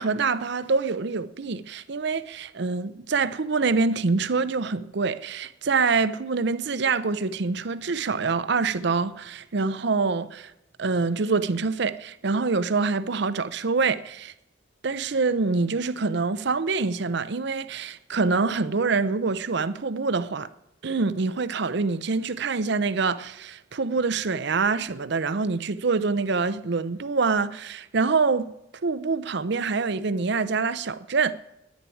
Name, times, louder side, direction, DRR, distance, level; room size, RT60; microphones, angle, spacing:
voice 1, 0.0-10.5 10.8-14.3 14.8-20.5 20.8-28.5 28.8-31.3, right 4 dB, 60° right, 0.6 m, -25 dB
10.0 x 10.0 x 9.8 m
head